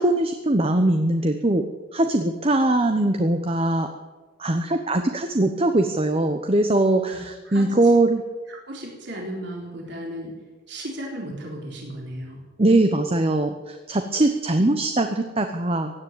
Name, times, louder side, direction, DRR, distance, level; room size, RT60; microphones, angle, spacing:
voice 1, 0.0-1.6 1.9-3.9 4.4-8.2 12.6-15.9, right 2 dB, 30° right, 6 dB, 0.9 m, -21 dB
voice 2, 8.5-10.3 10.7-12.4, right 1 dB, 60° right, -1 dB, 3.9 m, -35 dB
16.5 x 9.6 x 8.9 m, 1.3 s
head